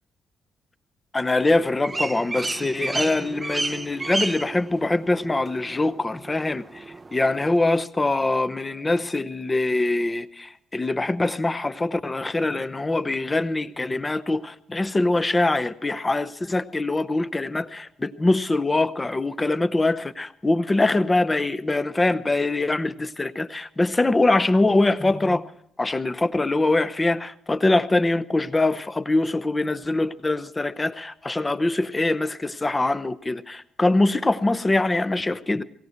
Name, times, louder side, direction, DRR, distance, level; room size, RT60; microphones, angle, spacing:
voice 1, 1.1-6.8 7.1-25.4 25.8-35.6, left 2 dB, 20° left, 0.7 m, -23 dB
sound 1, 1.4-7.6, right 3 dB, 25° right, 0.5 m, -32 dB
18.0 x 17.0 x 4.5 m
cardioid pair, 90°, 0 cm